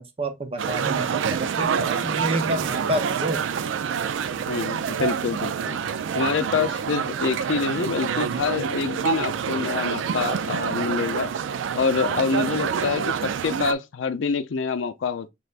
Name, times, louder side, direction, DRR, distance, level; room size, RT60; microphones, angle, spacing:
voice 1, 0.0-3.4, right 1 dB, 30° right, 0.7 m, -29 dB
sound 1, 0.6-13.7, right 7 dB, 85° right, 0.4 m, -27 dB
voice 2, 4.5-5.8 6.1-11.3 11.7-15.3, left 5 dB, 90° left, 0.5 m, -26 dB
5.2 x 3.3 x 2.4 m
head